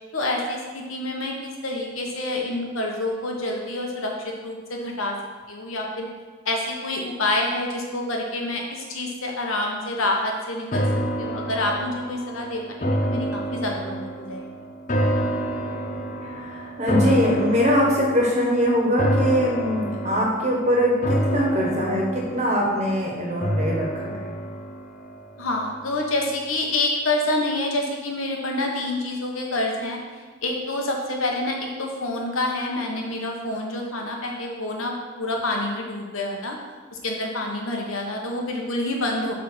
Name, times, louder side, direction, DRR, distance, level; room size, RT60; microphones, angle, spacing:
voice 1, 0.1-5.1 5.5-6.1 6.4-10.8 11.2-14.5 25.4-30.0 30.4-36.6 37.0-39.3, left 2 dB, 80° left, 0 dB, 1.3 m, -27 dB
sound 1, 10.7-26.0 26.4-26.5, equal, 35° left, 0.8 m, -28 dB
voice 2, 16.2-24.3, equal, 35° right, -2 dB, 1.5 m, -22 dB
7.8 x 3.7 x 6.3 m, 1.4 s
head